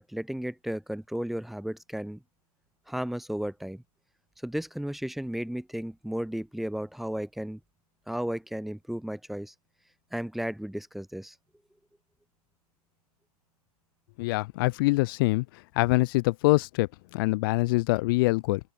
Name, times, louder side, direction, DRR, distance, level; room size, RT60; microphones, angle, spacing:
voice 1, 0.0-2.2 2.9-3.8 4.4-7.6 8.1-9.5 10.1-11.4, equal, ahead, 1.9 m, -34 dB
voice 2, 14.2-15.4 15.7-18.6, left 22 dB, 35° left, 1.5 m, -24 dB
open air
hypercardioid pair, 155°, 20 cm